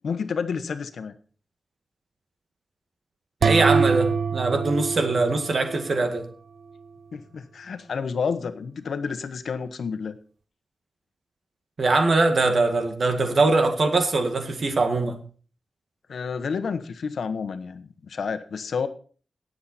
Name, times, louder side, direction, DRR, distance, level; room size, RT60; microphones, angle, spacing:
voice 1, 0.0-1.1 7.1-10.2 16.1-18.9, left 5 dB, 90° left, 1.2 m, -30 dB
voice 2, 3.4-6.3 11.8-15.2, right 3 dB, 55° right, 1.9 m, -22 dB
sound 1, 3.4-6.2, right 5 dB, 75° right, 0.8 m, -24 dB
18.0 x 7.7 x 4.2 m
wide cardioid pair, 130°, 0 cm